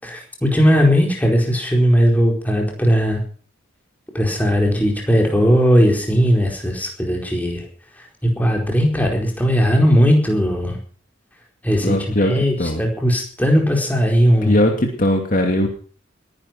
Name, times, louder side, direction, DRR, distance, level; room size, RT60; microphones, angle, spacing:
voice 1, 0.0-3.2 4.1-7.7 8.4-10.8 11.6-14.6, equal, 10° left, 0 dB, 4.5 m, -17 dB
voice 2, 11.8-12.3 12.6-12.8 14.4-15.7, left 1 dB, 45° left, 3 dB, 2.6 m, -19 dB
20.5 x 11.0 x 6.0 m, 0.42 s
head